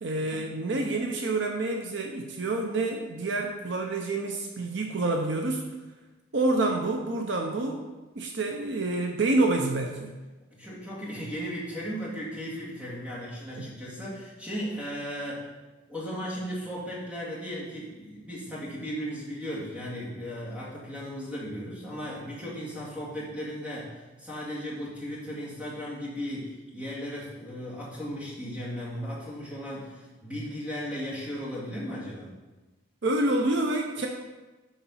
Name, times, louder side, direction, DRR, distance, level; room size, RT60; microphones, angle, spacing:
voice 1, 0.0-5.6 6.3-7.8 8.2-10.1 13.6-13.7 33.0-34.1, right 2 dB, 60° right, 3 dB, 0.7 m, -28 dB
voice 2, 10.5-15.5 15.9-32.3, equal, 5° right, -7 dB, 2.1 m, -36 dB
7.1 x 5.0 x 5.6 m, 1.2 s
head